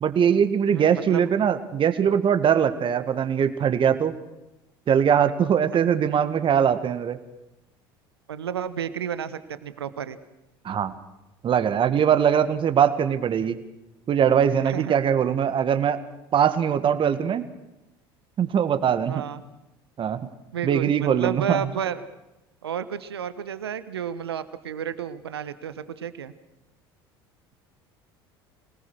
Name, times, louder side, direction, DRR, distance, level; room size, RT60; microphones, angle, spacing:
voice 1, 0.0-4.1 4.9-7.2 10.6-10.9 11.4-13.6 14.1-16.0 16.3-17.5 18.4-19.2 20.0-20.2 20.6-21.6, right 8 dB, 40° right, 11 dB, 1.9 m, -21 dB
voice 2, 0.7-1.2 8.3-10.2 14.6-15.0 19.1-19.4 20.5-22.0 22.6-26.3, right 8 dB, 90° right, 14 dB, 1.2 m, -31 dB
26.0 x 19.0 x 6.4 m, 0.94 s
hypercardioid pair, 70°, 13 cm